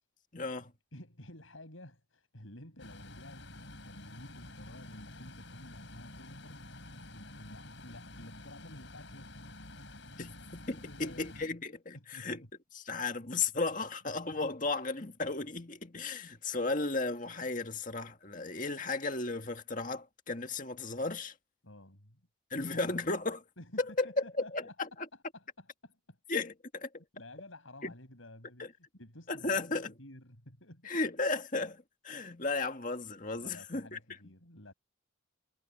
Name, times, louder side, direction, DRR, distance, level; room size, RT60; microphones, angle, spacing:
voice 1, 0.3-0.7 10.2-12.4 12.9-21.3 22.5-23.4 24.0-24.1 24.5-24.9 26.3-27.0 27.8-27.9 29.3-29.9 30.9-34.0, left 3 dB, 40° left, 2.0 m, -35 dB
voice 2, 0.9-6.6 7.1-9.5 10.9-11.4 11.9-12.5 21.6-22.2 22.5-23.0 23.6-26.2 27.1-31.0 33.4-34.7, left 1 dB, 80° left, 6.6 m, -52 dB
sound 1, 2.8-11.5, left 2 dB, 65° left, 5.8 m, -49 dB
head